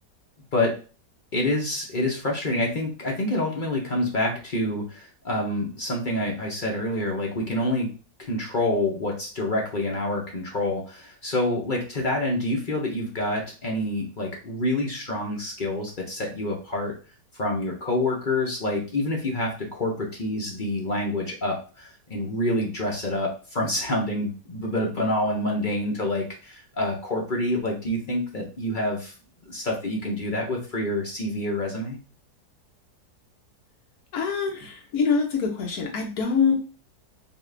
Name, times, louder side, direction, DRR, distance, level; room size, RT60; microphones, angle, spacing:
voice 1, 1.3-7.9 8.2-16.9 17.4-29.1 29.5-32.0, left 1 dB, 45° left, -1 dB, 0.7 m, -27 dB
voice 2, 34.1-36.6, left 5 dB, 60° left, 1 dB, 1.4 m, -24 dB
4.9 x 2.4 x 3.3 m, 0.35 s
omnidirectional pair, 1.9 m